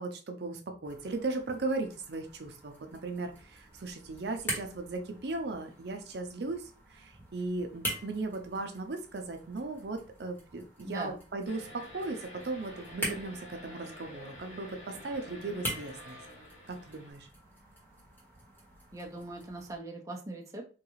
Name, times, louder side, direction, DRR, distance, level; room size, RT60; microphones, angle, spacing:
voice 1, 0.0-16.2 16.7-17.3, right 3 dB, 70° right, 5 dB, 0.5 m, -37 dB
sound 1, 0.8-19.8, right 1 dB, 10° left, 1.2 m, -44 dB
voice 2, 10.8-11.1 18.9-20.6, right 2 dB, 20° right, -1 dB, 0.6 m, -40 dB
sound 2, 11.5-17.1, left 1 dB, 45° left, 1.1 m, -49 dB
3.6 x 2.4 x 3.0 m, 0.36 s
head